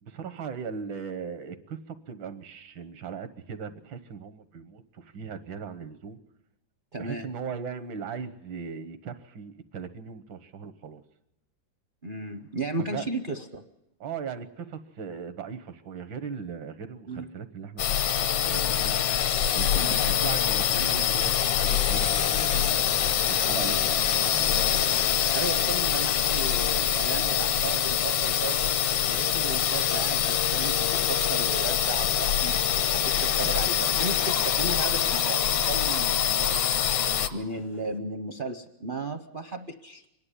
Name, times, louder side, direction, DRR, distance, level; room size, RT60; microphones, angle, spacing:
voice 1, 0.0-6.2 7.0-11.0 12.9-13.1 14.0-19.0 19.5-22.7 23.3-24.6, right 6 dB, 85° right, 11 dB, 1.9 m, -38 dB
voice 2, 6.9-7.3 12.0-13.6 17.1-17.2 19.7-20.0 25.3-28.7 29.0-40.0, right 3 dB, 50° right, 6 dB, 0.6 m, -35 dB
sound 1, 17.8-37.3, left 9 dB, 70° left, 1.5 m, -25 dB
sound 2, 32.0-38.0, equal, 30° left, 0.5 m, -43 dB
25.0 x 11.0 x 9.9 m, 0.88 s
omnidirectional pair, 2.0 m